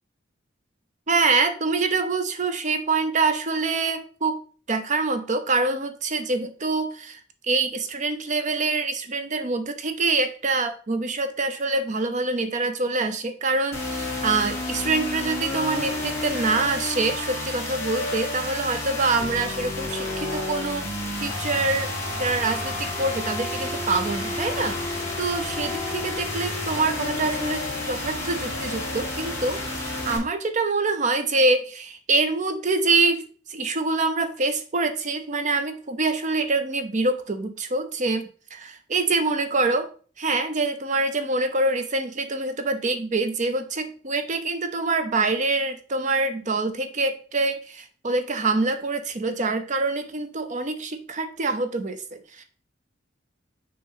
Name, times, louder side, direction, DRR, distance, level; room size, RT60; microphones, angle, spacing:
voice 1, 1.1-4.4 4.7-7.2 7.5-20.9 21.2-39.9 40.2-52.4, right 3 dB, 40° right, 8 dB, 0.6 m, -25 dB
sound 1, 13.7-30.2, left 2 dB, 15° left, 2.1 m, -30 dB
6.2 x 3.0 x 5.4 m, 0.40 s
head